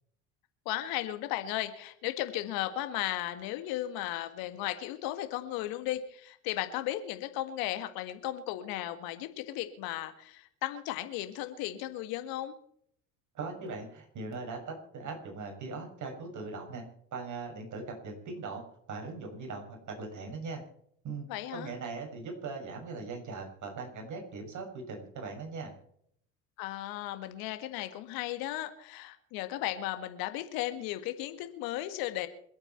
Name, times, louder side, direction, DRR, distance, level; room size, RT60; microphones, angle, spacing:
voice 1, 0.7-12.6 21.3-21.7 26.6-32.3, left 14 dB, 65° left, 9 dB, 1.9 m, -35 dB
voice 2, 13.3-16.8 17.1-18.6 18.9-20.6 21.0-21.3 21.5-25.7, right 4 dB, 50° right, 2 dB, 6.6 m, -40 dB
27.0 x 9.0 x 4.5 m, 0.68 s
hypercardioid pair, 65°, 38 cm